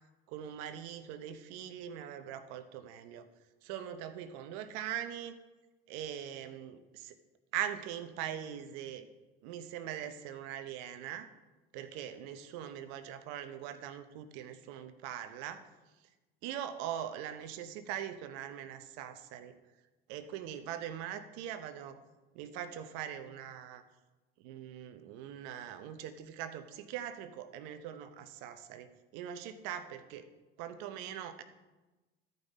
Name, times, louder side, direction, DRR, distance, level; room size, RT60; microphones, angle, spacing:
voice 1, 0.3-3.3 3.6-5.3 5.9-7.2 7.5-9.1 9.4-11.3 11.7-15.6 16.4-19.5 20.1-22.0 22.3-23.8 24.4-30.3 30.6-31.4, right 10 dB, 70° right, 10 dB, 0.9 m, -41 dB
13.0 x 5.4 x 4.1 m, 1.1 s
hypercardioid pair, 85°, 29 cm